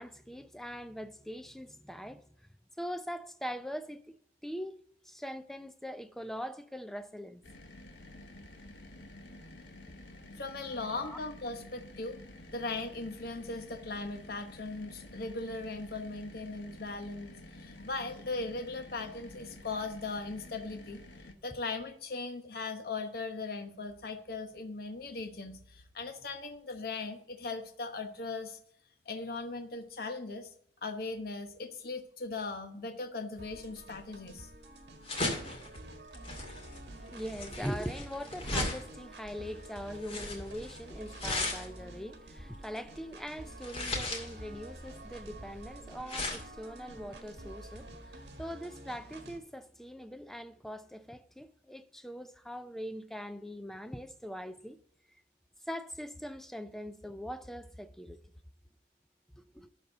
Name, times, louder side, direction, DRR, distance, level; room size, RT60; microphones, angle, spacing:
voice 1, 0.0-2.2 2.8-4.2 4.4-4.8 5.0-7.4 10.7-11.2 36.9-54.8 55.7-58.2 59.3-59.7, equal, ahead, 0.5 m, -42 dB
sound 1, 7.4-21.3, left 1 dB, 85° left, 1.3 m, -50 dB
voice 2, 10.4-12.2 12.5-21.0 21.4-28.6 29.1-30.5 30.8-34.5, left 3 dB, 55° left, 0.9 m, -39 dB
sound 2, 33.4-49.4, right 1 dB, 70° right, 1.6 m, -49 dB
sound 3, 33.5-48.3, left 2 dB, 35° left, 2.3 m, -38 dB
12.0 x 4.3 x 6.6 m
head